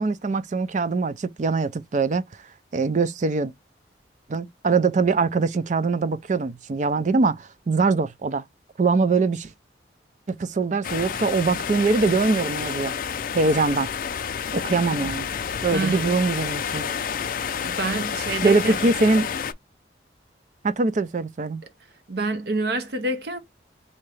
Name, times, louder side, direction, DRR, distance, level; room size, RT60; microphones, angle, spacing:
voice 1, 0.0-2.3 2.7-3.5 4.3-8.4 8.8-9.5 10.3-12.9 13.3-13.9 14.5-15.3 15.6-16.9 18.4-19.3 20.6-21.6, right 3 dB, 45° right, 0.4 m, -22 dB
sound 1, 10.8-19.5, left 7 dB, 50° left, 0.4 m, -29 dB
voice 2, 15.7-16.1 17.6-18.9 22.1-23.4, right 2 dB, 65° right, 0.8 m, -27 dB
3.7 x 2.8 x 3.2 m
head